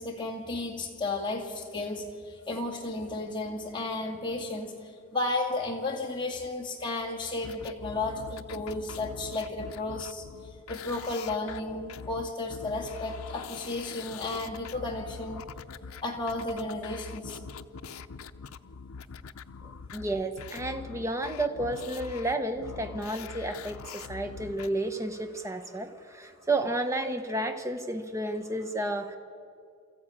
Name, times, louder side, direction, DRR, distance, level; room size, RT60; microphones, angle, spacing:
voice 1, 0.0-10.3 10.7-15.4 16.0-17.4, left 2 dB, 20° left, 0 dB, 2.0 m, -33 dB
sound 1, 7.4-24.7, left 5 dB, 85° left, 0.6 m, -43 dB
voice 2, 19.6-29.2, right 1 dB, 15° right, 7 dB, 0.9 m, -32 dB
23.0 x 14.5 x 8.7 m, 2.4 s
head